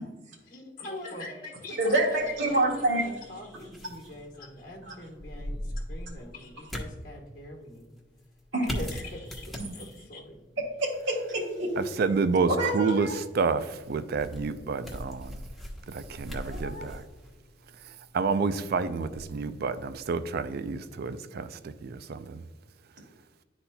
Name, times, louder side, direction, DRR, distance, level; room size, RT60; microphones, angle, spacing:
voice 1, 0.5-7.9 8.6-10.4, left 1 dB, 50° left, -1 dB, 1.2 m, -43 dB
voice 2, 1.8-3.0 4.8-4.9 8.5-8.6 10.6-11.7 12.5-13.2 16.4-16.9, right 1 dB, 80° right, -4 dB, 1.9 m, -27 dB
sound 1, 2.1-20.2, equal, ahead, 1.1 m, -42 dB
voice 3, 11.8-15.4 15.9-17.0 17.8-22.4, right 4 dB, 55° right, 12 dB, 0.4 m, -29 dB
11.0 x 4.2 x 2.2 m, 1.3 s
head